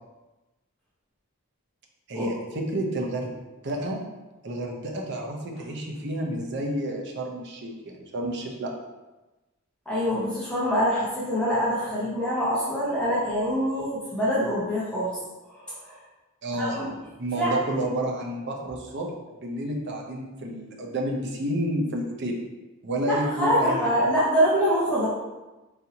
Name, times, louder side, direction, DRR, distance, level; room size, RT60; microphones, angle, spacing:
voice 1, 2.1-3.3 3.6-4.0 4.4-8.7 16.4-16.9 17.2-19.1 19.3-22.4 22.8-23.9, right 1 dB, 55° right, 0 dB, 0.6 m, -30 dB
voice 2, 9.9-15.2 15.5-16.0 16.6-16.9 17.3-17.8 23.0-25.1, equal, 5° left, -10 dB, 0.8 m, -25 dB
4.0 x 2.7 x 2.7 m, 1.1 s
head